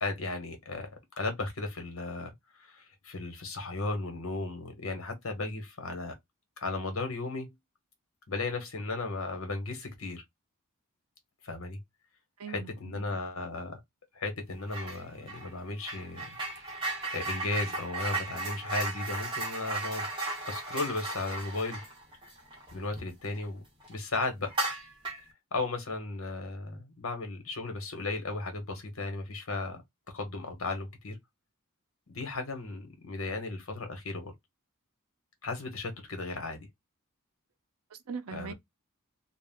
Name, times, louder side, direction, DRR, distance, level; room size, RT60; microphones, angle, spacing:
voice 1, 0.0-0.9 1.2-6.1 6.6-7.5 8.3-10.2 11.4-11.8 12.5-13.8 14.1-16.3 17.1-20.1 20.5-21.8 22.7-23.6 23.9-24.5 25.5-29.8 30.1-31.2 32.1-34.3 35.4-36.6 38.3-38.5, left 3 dB, 65° left, 1.0 m, -35 dB
voice 2, 12.4-13.1 37.9-38.5, right 6 dB, 90° right, 0.5 m, -41 dB
sound 1, 14.7-15.0 15.3-23.4 23.8-23.9 24.5-25.3, right 2 dB, 20° right, 1.1 m, -36 dB
2.3 x 2.3 x 3.3 m
head